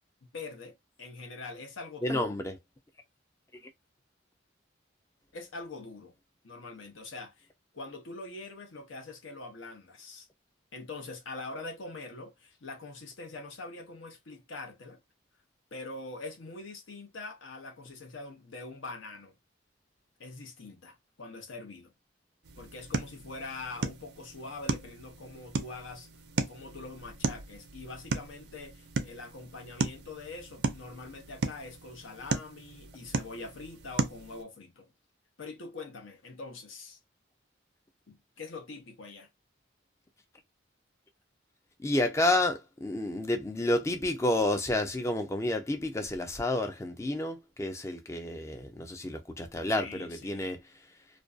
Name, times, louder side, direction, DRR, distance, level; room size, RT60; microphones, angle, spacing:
voice 1, 0.2-2.3 5.3-6.1 6.4-7.5 7.7-10.3 10.7-15.0 15.7-19.3 20.2-21.9 22.6-26.1 26.4-34.9 35.4-37.0 38.1-39.3 49.8-50.6, left 3 dB, 80° left, 0.7 m, -44 dB
voice 2, 2.0-2.6 41.8-50.6, left 1 dB, 15° left, 0.3 m, -30 dB
sound 1, 22.4-34.4, right 4 dB, 55° right, 0.4 m, -36 dB
2.5 x 2.2 x 2.3 m
head